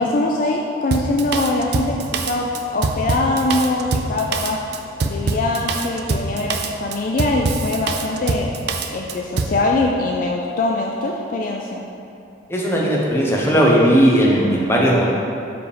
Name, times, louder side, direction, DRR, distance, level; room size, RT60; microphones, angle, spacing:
voice 1, 0.0-2.5 2.7-4.6 5.0-8.5 8.9-11.8, left 2 dB, 45° left, 0 dB, 0.4 m, -22 dB
Drum kit, 0.9-9.6, right 3 dB, 55° right, 0.4 m, -24 dB
voice 2, 12.5-15.1, equal, 10° left, -4 dB, 0.8 m, -16 dB
5.1 x 4.9 x 4.9 m, 2.6 s
head